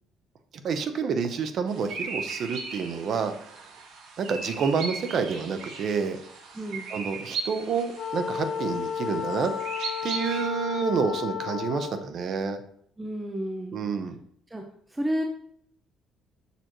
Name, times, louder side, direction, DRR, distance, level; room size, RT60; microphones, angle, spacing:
voice 1, 0.6-3.3 4.2-6.2 6.9-9.5 10.0-12.6 13.7-14.1, right 5 dB, 45° right, 8 dB, 0.7 m, -28 dB
sound 1, 1.7-10.4, right 4 dB, 85° right, 1.9 m, -38 dB
voice 2, 6.5-6.9 13.0-13.8 14.5-14.6 14.9-15.2, equal, 10° right, 3 dB, 0.5 m, -31 dB
Wind instrument woodwind instrument, 7.9-12.1, left 8 dB, 40° left, 0.7 m, -33 dB
6.7 x 6.2 x 3.0 m, 0.66 s
cardioid pair, 165°, 0 cm